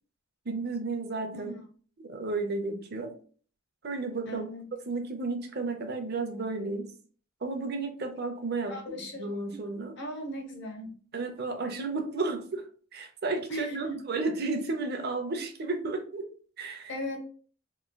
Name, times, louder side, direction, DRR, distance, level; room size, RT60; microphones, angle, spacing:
voice 1, 0.5-1.5 2.0-3.1 3.8-4.5 4.9-6.9 7.4-10.0 11.1-16.3 16.6-16.9, right 3 dB, 50° right, 5 dB, 0.7 m, -33 dB
voice 2, 4.3-4.7 8.7-9.3 9.5-9.6 10.0-11.0 13.5-14.0 16.9-17.2, left 1 dB, 60° left, 3 dB, 0.9 m, -37 dB
3.7 x 3.1 x 2.2 m, 0.43 s
head